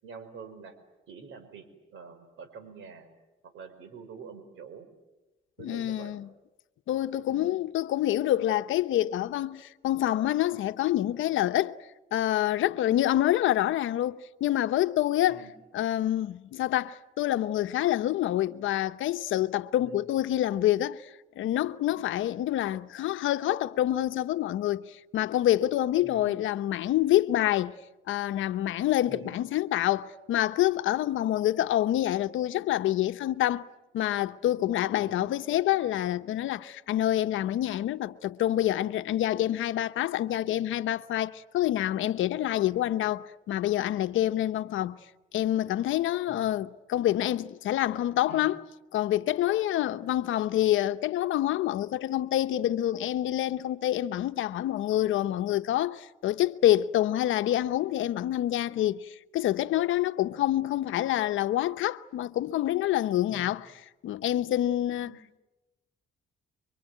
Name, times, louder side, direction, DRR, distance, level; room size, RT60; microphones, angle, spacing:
voice 1, 0.0-0.7 1.1-3.1 3.4-4.9 5.6-6.2 7.3-7.5 15.3-15.5 19.8-20.1 26.0-26.4 29.1-29.4 34.9-35.3 46.3-46.5 48.3-48.4 50.1-50.2 63.3-63.6 65.0-65.2, right 5 dB, 80° right, 5.2 m, -46 dB
voice 2, 5.6-6.3 6.9-11.8 12.1-15.4 15.7-27.7 28.1-33.7 33.9-45.0 45.3-48.6 48.9-63.7 64.0-65.4, left 13 dB, 80° left, 0.9 m, -27 dB
26.0 x 24.5 x 9.3 m
cardioid pair, 90°, 20 cm